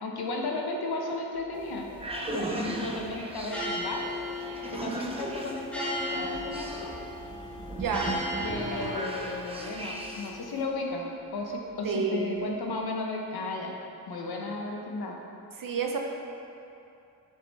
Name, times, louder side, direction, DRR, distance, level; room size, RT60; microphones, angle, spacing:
voice 1, 0.0-1.9 2.3-4.1 4.7-6.9 8.4-13.7 14.1-15.2, left 2 dB, 80° left, 1 dB, 1.0 m, -34 dB
sound 1, 1.4-10.5, right 2 dB, 15° right, 0.6 m, -37 dB
sound 2, 1.5-10.6, left 1 dB, 5° left, 1.1 m, -38 dB
voice 2, 7.8-8.2 11.8-12.5 15.6-16.0, right 5 dB, 60° right, 2 dB, 0.8 m, -30 dB
6.5 x 5.4 x 4.0 m, 2.7 s
cardioid pair, 90°, 37 cm